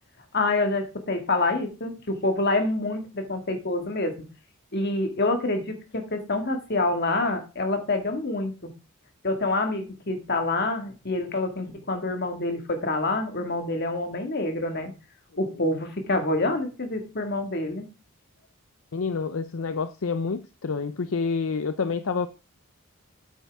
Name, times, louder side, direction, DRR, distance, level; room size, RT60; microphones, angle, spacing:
voice 1, 0.3-4.3 4.7-8.7 9.2-14.9 15.4-17.9, left 2 dB, 50° left, 1.9 m, -27 dB
voice 2, 18.9-22.3, left 5 dB, 65° left, 0.6 m, -28 dB
9.3 x 8.4 x 3.5 m
head